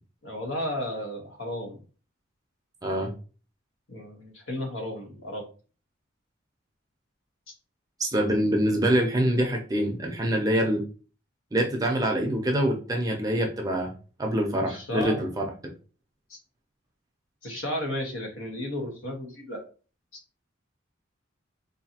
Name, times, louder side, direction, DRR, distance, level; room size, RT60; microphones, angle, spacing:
voice 1, 0.2-1.8 3.9-5.5 14.6-15.2 16.3-16.4 17.4-19.6, left 1 dB, 80° left, 2 dB, 1.1 m, -33 dB
voice 2, 8.0-10.8 11.5-13.9 14.2-15.4, right 1 dB, 20° right, 1 dB, 0.5 m, -25 dB
3.9 x 2.6 x 2.8 m, 0.36 s
head